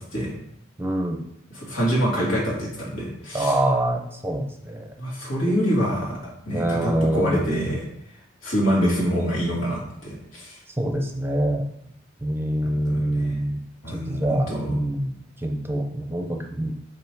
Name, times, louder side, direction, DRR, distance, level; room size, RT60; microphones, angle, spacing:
voice 1, 0.8-1.2 3.3-4.9 6.5-7.4 10.8-11.6 12.2-13.6 13.9-16.7, right 1 dB, 10° right, 3 dB, 0.6 m, -25 dB
voice 2, 1.5-3.5 5.0-6.2 6.5-7.8 8.4-10.6 12.6-13.4 13.8-14.7, equal, 85° left, -4 dB, 2.5 m, -25 dB
5.4 x 4.8 x 4.7 m, 0.75 s
head